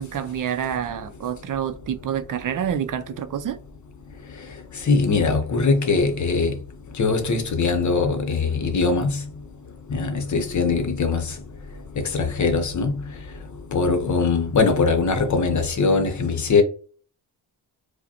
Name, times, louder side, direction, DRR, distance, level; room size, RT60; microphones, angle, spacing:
voice 1, 0.0-3.6, right 9 dB, 55° right, 0.5 m, -28 dB
voice 2, 4.9-6.5 7.0-9.1 9.9-11.2 12.1-12.9 13.7-16.6, left 4 dB, 45° left, 0.8 m, -21 dB
4.9 x 2.1 x 2.8 m
cardioid pair, 95°, 40 cm